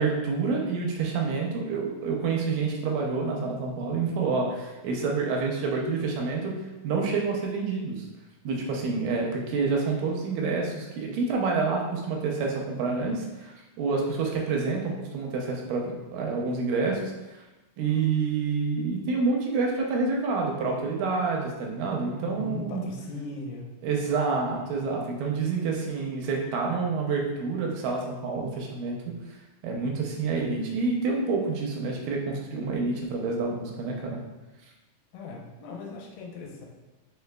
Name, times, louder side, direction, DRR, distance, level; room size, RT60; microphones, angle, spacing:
voice 1, 0.0-6.6 6.8-8.1 8.5-17.0 17.3-17.4 17.8-22.8 23.8-29.0 29.6-34.2, right 4 dB, 80° right, 0 dB, 2.2 m, -28 dB
voice 2, 22.2-23.6 35.1-36.7, left 3 dB, 90° left, 0 dB, 2.6 m, -38 dB
4.8 x 4.6 x 2.2 m, 1.1 s
omnidirectional pair, 4.1 m